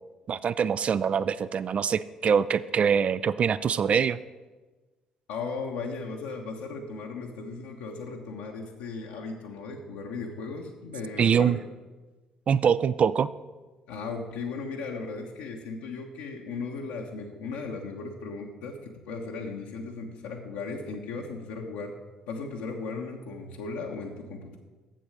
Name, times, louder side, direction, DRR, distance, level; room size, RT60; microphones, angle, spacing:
voice 1, 0.3-4.2 11.2-11.6 12.5-13.3, right 7 dB, 40° right, 15 dB, 0.3 m, -24 dB
voice 2, 5.3-11.7 13.9-21.9 22.3-24.6, left 4 dB, 65° left, 0 dB, 1.0 m, -36 dB
7.7 x 7.2 x 6.3 m, 1.3 s
figure-of-eight pair, 50°, 3 cm